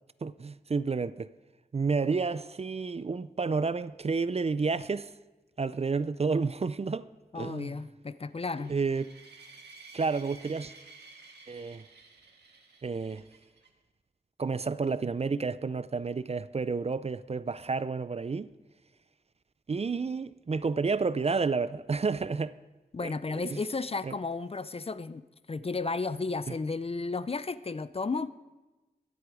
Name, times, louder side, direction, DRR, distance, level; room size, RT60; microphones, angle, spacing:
voice 1, 0.2-1.3 1.7-5.1 5.6-7.1 7.4-7.7 8.7-9.1 9.9-10.7 11.5-11.8 12.8-13.2 14.4-18.5 19.7-22.5 23.0-23.1 23.4-23.6 24.0-24.1 26.5-26.6, right 4 dB, 40° right, 0.4 m, -30 dB
voice 2, 7.3-8.7 22.9-28.3, left 3 dB, 35° left, 0.5 m, -33 dB
sound 1, 8.4-13.7, right 3 dB, 85° right, 1.7 m, -53 dB
22.5 x 8.1 x 4.8 m
wide cardioid pair, 95°, 17 cm